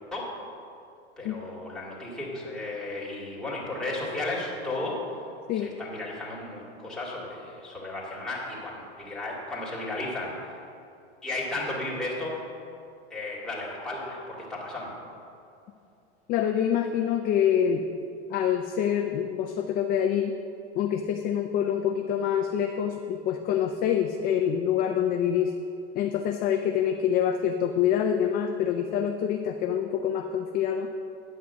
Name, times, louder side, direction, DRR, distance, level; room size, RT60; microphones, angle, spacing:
voice 1, 1.2-5.0 5.5-10.5 11.2-12.3 13.1-15.0, left 2 dB, ahead, -6 dB, 2.4 m, -34 dB
voice 2, 16.3-17.8 18.3-20.3 20.8-25.5 25.9-30.9, left 9 dB, 25° left, 4 dB, 0.4 m, -26 dB
9.5 x 5.8 x 6.3 m, 2.6 s
hypercardioid pair, 125°, 34 cm